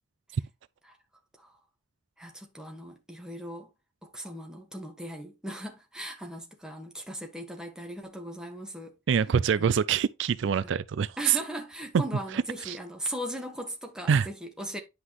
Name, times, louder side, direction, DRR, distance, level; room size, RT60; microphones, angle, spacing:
voice 1, 2.2-3.7 4.0-9.0 9.6-9.8 10.6-10.7 11.2-14.8, equal, 5° right, 1.5 m, -38 dB
voice 2, 9.1-11.4 12.3-12.8 14.1-14.3, right 7 dB, 65° right, 0.3 m, -25 dB
9.8 x 5.6 x 3.0 m
head